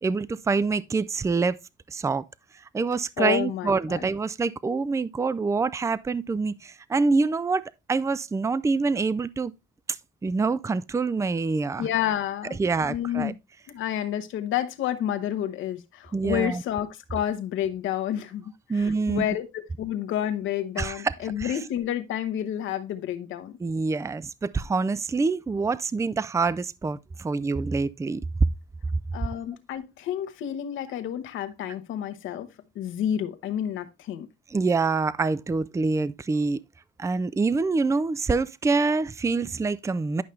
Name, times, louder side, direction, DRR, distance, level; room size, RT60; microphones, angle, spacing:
voice 1, 0.0-1.6 1.9-2.2 2.7-9.5 10.2-11.9 12.6-13.3 16.1-16.6 18.7-19.3 20.8-21.6 23.6-28.2 34.5-36.6 37.0-40.2, right 4 dB, 15° right, 0.4 m, -26 dB
voice 2, 3.2-4.1 11.8-12.6 12.9-13.3 13.7-23.6 29.1-32.5 32.7-34.3, left 10 dB, 85° left, 1.1 m, -30 dB
11.0 x 5.6 x 3.2 m
cardioid pair, 90°, 20 cm